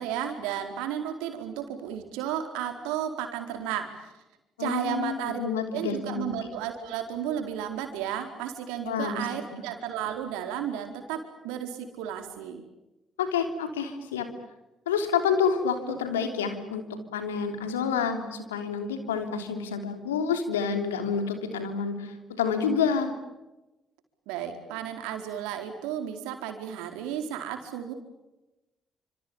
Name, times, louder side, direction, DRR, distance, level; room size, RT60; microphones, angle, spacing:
voice 1, 0.0-4.1 4.6-5.4 5.7-12.6 24.3-27.9, right 9 dB, 75° right, 5 dB, 4.4 m, -33 dB
voice 2, 4.6-6.3 8.8-9.3 13.2-14.3 14.8-16.8 17.1-23.1, left 6 dB, 85° left, 7 dB, 3.3 m, -28 dB
29.5 x 27.0 x 7.2 m, 1.0 s
hypercardioid pair, 45°, 0 cm